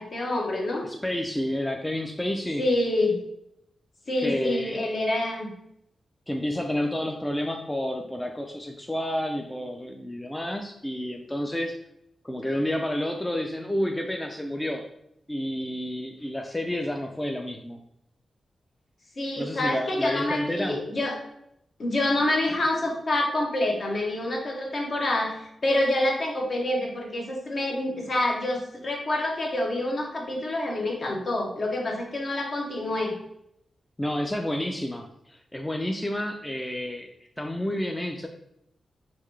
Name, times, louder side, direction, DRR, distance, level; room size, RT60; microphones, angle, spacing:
voice 1, 0.0-0.9 2.6-3.2 4.1-5.5 19.2-21.2 21.8-33.1, left 1 dB, 55° left, 0 dB, 1.0 m, -27 dB
voice 2, 0.8-2.6 4.2-4.9 6.3-11.8 12.2-14.9 15.3-17.8 19.4-20.8 34.0-37.1 37.4-38.3, left 1 dB, 10° left, 2 dB, 0.4 m, -30 dB
3.8 x 3.1 x 3.3 m, 0.77 s
cardioid pair, 90°, 0 cm